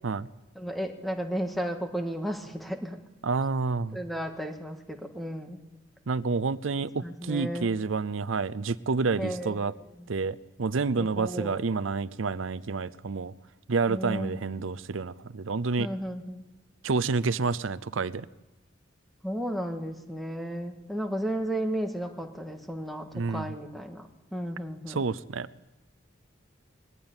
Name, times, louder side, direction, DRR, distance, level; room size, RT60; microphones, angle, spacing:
voice 1, 0.6-3.0 3.9-5.6 7.0-7.7 9.1-10.1 11.0-11.6 13.9-14.7 15.8-16.4 19.2-25.0, equal, ahead, 5 dB, 1.8 m, -34 dB
voice 2, 3.2-4.0 6.1-9.7 10.1-13.3 13.7-15.9 16.8-18.3 23.1-23.5 24.9-25.5, right 4 dB, 85° right, 16 dB, 0.6 m, -29 dB
21.5 x 15.0 x 9.0 m, 1.0 s
head